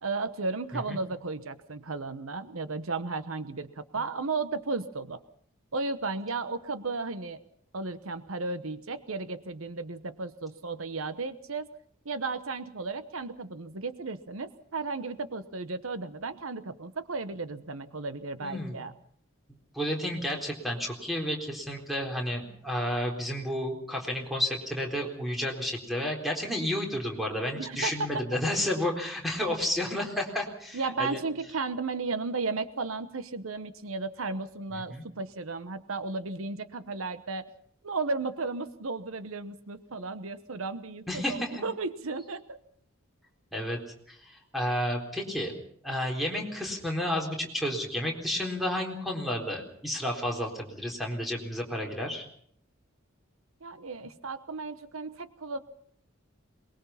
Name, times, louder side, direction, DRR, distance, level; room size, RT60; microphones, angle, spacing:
voice 1, 0.0-5.2 5.7-7.4 7.7-11.7 12.0-18.9 27.6-27.9 30.7-37.5 37.8-42.6 53.6-55.6, right 3 dB, 80° right, 12 dB, 1.1 m, -34 dB
voice 2, 18.4-18.7 19.7-31.2 34.7-35.1 41.1-41.6 43.5-43.8 44.1-52.2, left 1 dB, ahead, 0 dB, 3.9 m, -31 dB
23.0 x 21.5 x 5.7 m, 0.64 s
head